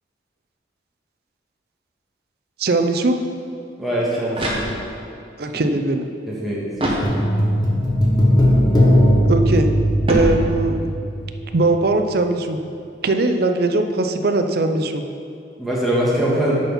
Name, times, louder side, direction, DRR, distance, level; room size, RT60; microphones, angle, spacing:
voice 1, 2.6-3.2 5.4-6.1 9.2-9.7 10.1-10.9 11.5-12.6 13.0-15.0, right 2 dB, 55° right, 6 dB, 0.5 m, -20 dB
voice 2, 3.8-4.6 6.3-7.1 15.6-16.6, right 1 dB, ahead, -8 dB, 1.6 m, -22 dB
sound 1, 4.3-5.2 6.7-7.6 10.0-11.0, equal, 30° right, 1.2 m, -25 dB
sound 2, 7.0-11.5 11.7-11.8, equal, 20° left, 0.9 m, -18 dB
9.2 x 4.4 x 5.6 m, 2.5 s
head